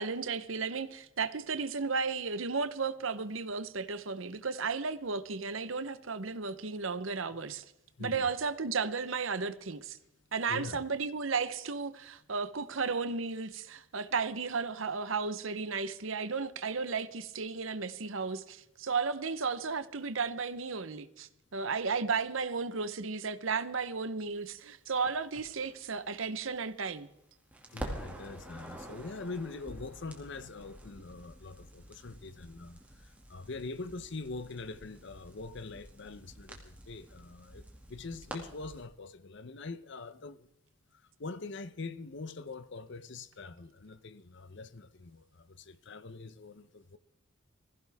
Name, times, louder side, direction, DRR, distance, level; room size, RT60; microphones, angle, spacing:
voice 1, 0.0-7.6 8.0-10.0 10.3-27.1, right 4 dB, 70° right, 1.0 m, -34 dB
voice 2, 8.0-8.3 10.5-10.9 27.7-40.5 40.9-47.0, left 3 dB, 60° left, 0.8 m, -43 dB
Crackle, 25.0-27.2 27.5-38.8, right 1 dB, 5° right, 2.3 m, -48 dB
21.0 x 15.5 x 3.6 m
head